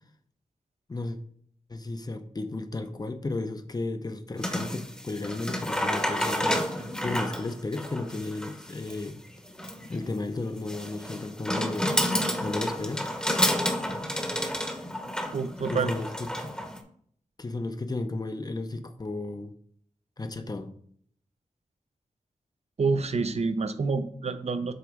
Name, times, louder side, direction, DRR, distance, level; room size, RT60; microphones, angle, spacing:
voice 1, 1.7-9.2 9.9-12.0 12.4-13.0 15.7-16.5 17.4-19.5 20.2-20.7, left 2 dB, 30° left, 8 dB, 0.6 m, -34 dB
sound 1, 4.4-16.8, equal, 5° left, 0.9 m, -30 dB
voice 2, 15.3-15.9 22.8-24.7, right 4 dB, 50° right, 10 dB, 0.6 m, -27 dB
7.8 x 3.0 x 4.9 m, 0.62 s
wide cardioid pair, 90°, 14 cm